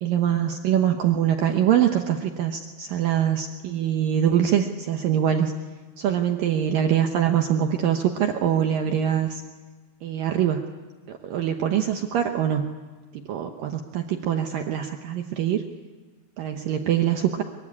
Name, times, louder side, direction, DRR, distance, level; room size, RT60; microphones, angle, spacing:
voice 1, 0.0-5.5 6.0-9.4 10.0-10.6 11.1-12.7 13.1-15.6 16.4-17.4, right 9 dB, 85° right, 4 dB, 1.9 m, -23 dB
23.5 x 23.5 x 9.8 m, 1.3 s
omnidirectional pair, 5.6 m